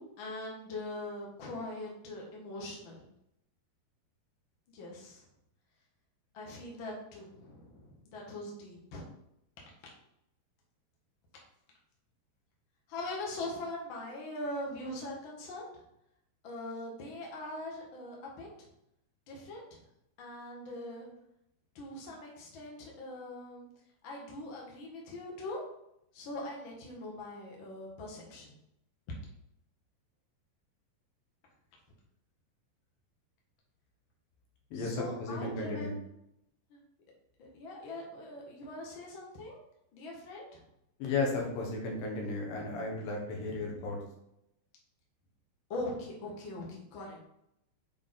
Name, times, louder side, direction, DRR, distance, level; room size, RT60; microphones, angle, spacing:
voice 1, 0.2-3.0 4.7-5.2 6.3-9.1 12.9-15.7 16.4-18.7 19.3-19.6 20.2-21.1 21.7-23.6 24.0-25.6 26.1-28.6 34.7-36.0 36.7-36.8 37.4-39.6 39.9-40.6 43.5-43.9 45.7-47.2, left 2 dB, 80° left, -2 dB, 1.1 m, -42 dB
voice 2, 34.7-36.0 41.0-44.0, left 3 dB, 65° left, -1 dB, 2.8 m, -34 dB
7.2 x 4.6 x 3.8 m, 0.79 s
omnidirectional pair, 4.9 m